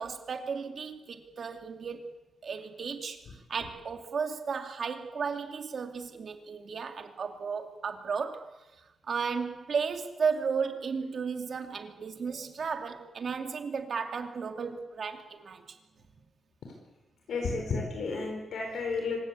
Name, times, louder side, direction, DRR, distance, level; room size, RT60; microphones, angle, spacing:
voice 1, 0.0-2.1 2.4-3.2 3.5-15.8, right 5 dB, 50° right, 5 dB, 2.5 m, -34 dB
voice 2, 17.3-19.2, left 4 dB, 75° left, 2 dB, 4.8 m, -32 dB
25.5 x 16.0 x 8.5 m, 1.1 s
wide cardioid pair, 160°, 0 cm